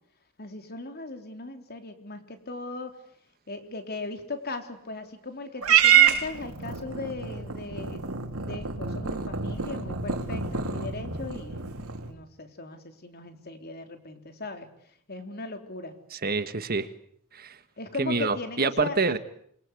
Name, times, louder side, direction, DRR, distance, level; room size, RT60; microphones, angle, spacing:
voice 1, 0.4-3.0 3.5-14.7 15.1-16.0 17.8-19.2, left 3 dB, 45° left, 6 dB, 3.8 m, -38 dB
Purr / Meow, 5.6-12.1, right 8 dB, 80° right, 3.6 m, -26 dB
voice 2, 16.1-16.9 17.3-17.6 18.0-19.2, right 4 dB, 45° right, 11 dB, 1.6 m, -27 dB
27.5 x 23.5 x 8.4 m, 0.67 s
head